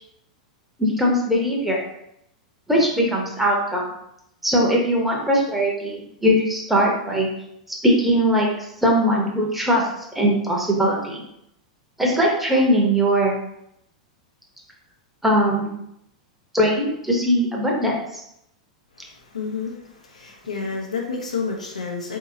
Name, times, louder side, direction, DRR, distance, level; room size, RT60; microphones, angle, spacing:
voice 1, 0.8-1.8 2.7-3.9 4.4-7.3 7.8-9.9 10.1-11.2 12.0-13.3 15.2-15.7 16.5-18.2, equal, 5° right, -2 dB, 0.9 m, -20 dB
voice 2, 19.3-19.7 20.0-22.2, left 5 dB, 70° left, 0 dB, 0.7 m, -29 dB
4.5 x 2.8 x 2.7 m, 0.78 s
figure-of-eight pair, 95°, 4 cm